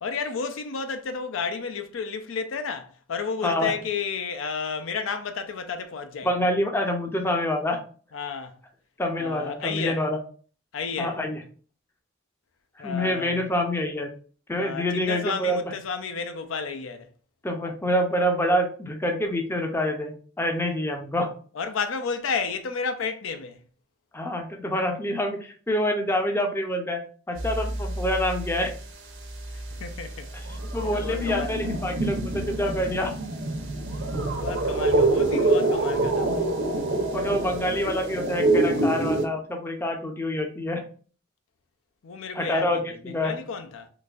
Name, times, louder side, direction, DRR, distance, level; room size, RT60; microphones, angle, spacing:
voice 1, 0.0-6.3 8.1-8.6 9.2-10.0 10.7-11.2 12.8-13.5 14.6-17.1 21.5-23.6 29.5-30.3 30.8-31.7 34.4-36.5 42.0-43.9, left 5 dB, 85° left, 0.5 m, -32 dB
voice 2, 6.2-7.8 9.0-10.2 11.0-11.4 12.8-14.1 14.5-15.6 17.4-21.3 24.1-27.0 27.3-28.7 30.7-33.1 37.1-40.8 42.3-43.3, equal, 10° left, 0.4 m, -26 dB
sound 1, 27.4-28.9 29.2-39.3, right 2 dB, 70° right, 0.7 m, -26 dB
3.8 x 2.5 x 2.4 m
head